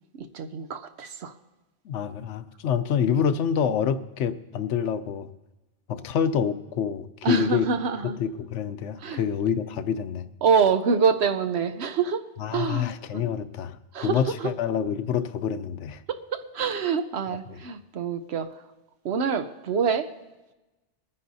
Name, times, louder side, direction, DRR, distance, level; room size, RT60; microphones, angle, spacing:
voice 1, 0.2-1.3 7.2-8.2 9.0-9.2 10.4-12.3 12.5-13.2 13.9-14.5 16.1-18.6 19.0-20.1, right 5 dB, 70° right, 8 dB, 0.9 m, -26 dB
voice 2, 1.9-5.3 5.9-7.7 8.2-10.2 12.4-13.8 14.0-16.0, left 8 dB, 80° left, 11 dB, 1.0 m, -27 dB
23.5 x 9.7 x 2.7 m, 1.1 s
omnidirectional pair, 1.2 m